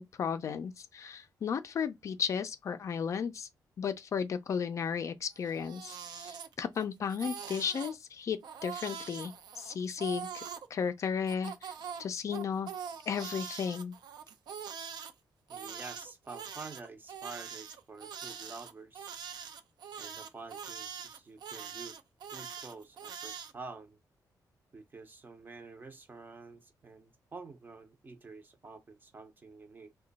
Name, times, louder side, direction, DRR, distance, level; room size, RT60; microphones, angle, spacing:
voice 1, 0.0-3.5 3.8-10.4 10.7-11.7 12.0-12.7 13.1-13.9, left 7 dB, 45° left, 0.3 m, -34 dB
Crying sobbing, 5.4-6.8 7.1-8.0 8.4-10.7 11.3-15.1 15.5-23.5, right 7 dB, 85° right, 0.5 m, -43 dB
voice 2, 15.5-19.1 20.0-22.0 22.3-24.0 24.7-29.9, right 4 dB, 25° right, 0.5 m, -48 dB
2.9 x 2.2 x 3.9 m
wide cardioid pair, 170°, 7 cm